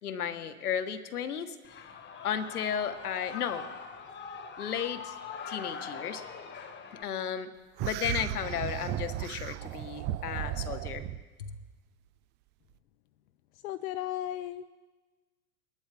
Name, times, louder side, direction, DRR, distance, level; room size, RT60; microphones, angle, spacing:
voice 1, 0.0-1.8 2.2-3.7 4.6-5.2 5.5-6.2 7.0-7.5 7.8-11.1 11.4-11.5, left 8 dB, 85° left, 10 dB, 1.3 m, -34 dB
Shout / Cheering, 1.6-7.0, left 6 dB, 25° left, 1.4 m, -42 dB
sound 1, 7.8-11.2, right 13 dB, 25° right, 0.3 m, -35 dB
voice 2, 13.6-14.6, left 12 dB, 70° left, 11 dB, 0.7 m, -35 dB
22.5 x 11.5 x 3.4 m, 1.3 s
hypercardioid pair, 105°, 44 cm